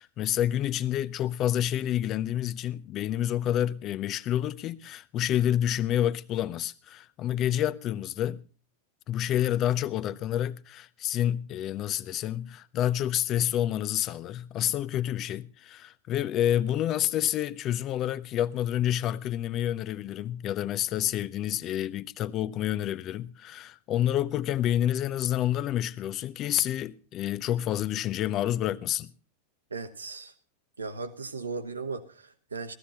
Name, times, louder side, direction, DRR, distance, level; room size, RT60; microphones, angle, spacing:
voice 1, 0.0-8.4 9.1-29.1, left 11 dB, 35° left, 0.6 m, -28 dB
voice 2, 29.7-30.3 30.8-32.7, right 4 dB, 75° right, 1.3 m, -37 dB
16.0 x 14.0 x 4.2 m
figure-of-eight pair, 90°, 0 cm